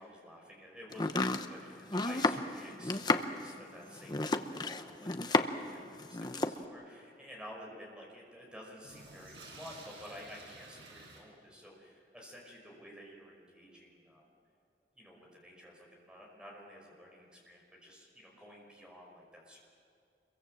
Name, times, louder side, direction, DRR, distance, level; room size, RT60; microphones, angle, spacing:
voice 1, 0.0-14.2 15.0-19.6, equal, 5° right, -1 dB, 5.3 m, -51 dB
Domestic sounds home sounds, 0.9-5.7 6.0-6.6, left 2 dB, 25° left, 0.8 m, -32 dB
sound 1, 8.7-11.2, right 2 dB, 90° right, 6.6 m, -52 dB
26.5 x 23.0 x 7.7 m, 2.3 s
head